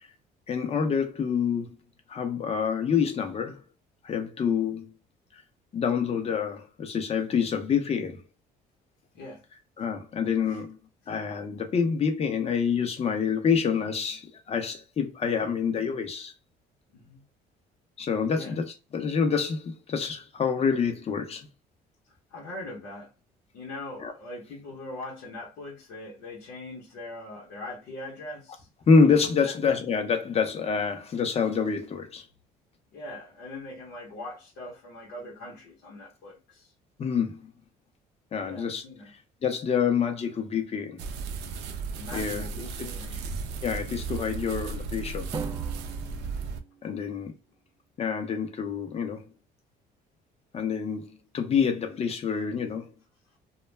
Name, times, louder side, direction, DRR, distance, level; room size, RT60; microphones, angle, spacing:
voice 1, 0.5-1.8 2.1-3.6 4.0-4.9 5.3-5.4 5.7-8.2 9.8-10.8 11.1-16.3 18.0-18.6 18.9-21.5 24.0-24.1 28.9-32.2 37.0-37.4 38.3-38.8 39.4-41.0 42.1-42.4 43.6-45.3 46.8-47.3 48.0-49.2 50.5-52.9, left 6 dB, 35° left, 0.7 m, -27 dB
voice 2, 22.3-23.1 23.5-28.7 29.4-29.6 32.9-36.7 38.4-39.1 41.9-43.3 46.8-47.1, left 2 dB, 85° left, 0.9 m, -41 dB
sound 1, 41.0-46.6, right 5 dB, 90° right, 0.5 m, -35 dB
Drum, 45.3-47.4, right 5 dB, 25° right, 0.4 m, -40 dB
2.3 x 2.1 x 3.1 m
cardioid pair, 110°, 17 cm